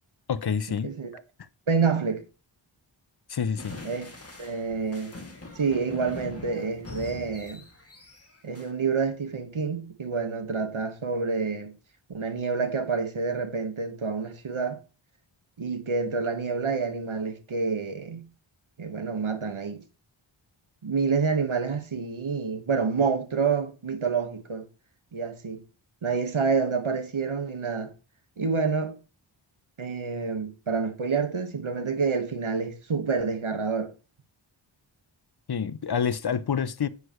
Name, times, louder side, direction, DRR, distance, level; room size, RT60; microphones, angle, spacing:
voice 1, 0.3-0.9 1.4-1.5 3.3-3.8 35.5-36.9, left 7 dB, 55° left, 0.7 m, -28 dB
voice 2, 1.7-2.2 3.8-4.1 4.4-5.1 5.5-7.6 8.4-11.7 12.1-14.8 15.6-18.3 18.8-19.8 20.8-24.6 25.1-25.6 26.0-27.9 28.4-29.0 29.8-33.9, right 5 dB, 80° right, 1.6 m, -28 dB
sound 1, 3.6-8.7, left 2 dB, 30° left, 2.4 m, -43 dB
9.6 x 8.1 x 3.1 m
wide cardioid pair, 60°, 48 cm